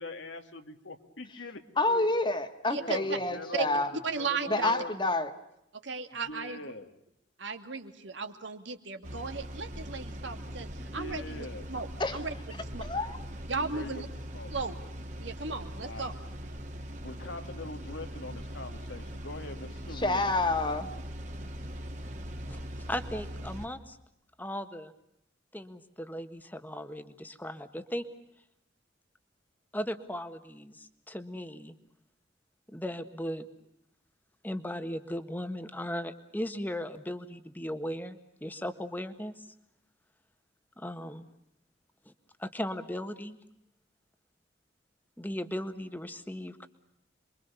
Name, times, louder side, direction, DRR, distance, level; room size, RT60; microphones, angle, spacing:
voice 1, 0.0-2.1 2.8-3.8 4.1-5.0 6.1-6.9 10.8-11.6 13.7-14.0 14.3-14.5 15.8-16.1 17.0-20.3, left 2 dB, 90° left, 2.3 m, -43 dB
voice 2, 1.8-3.9 4.5-5.3 12.0-12.2 12.8-13.2 19.9-20.9, left 2 dB, 25° left, 1.8 m, -28 dB
voice 3, 4.0-4.7 5.7-6.7 7.4-12.9 13.5-14.1 14.5-14.8 15.2-16.2, right 4 dB, 85° right, 2.6 m, -36 dB
sound 1, 9.0-23.7, equal, 40° right, 2.4 m, -41 dB
voice 4, 22.5-24.0 24.4-24.9 25.5-28.1 29.7-31.7 32.7-33.5 34.4-39.3 40.8-41.3 42.4-43.4 45.2-46.7, equal, 10° left, 1.5 m, -37 dB
27.5 x 23.0 x 6.9 m
head